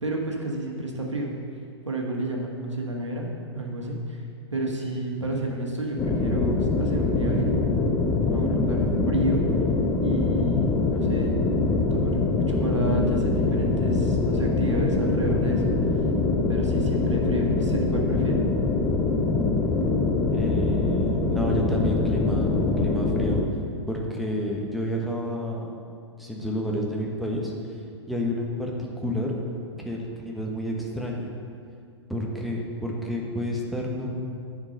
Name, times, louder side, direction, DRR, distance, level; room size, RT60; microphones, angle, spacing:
voice 1, 0.0-1.3 1.8-4.2 4.5-7.5 8.3-9.4 10.0-11.3 11.9-12.2 12.5-15.6 16.5-18.5, right 1 dB, 80° right, 0 dB, 1.6 m, -30 dB
sound 1, 6.0-23.5, left 3 dB, 15° left, 0.7 m, -24 dB
voice 2, 20.3-23.4 23.9-25.7 26.2-27.5 28.1-29.4 29.8-31.3 32.1-34.1, equal, ahead, -2 dB, 1.2 m, -30 dB
9.9 x 5.1 x 6.4 m, 2.3 s
figure-of-eight pair, 110°, 15 cm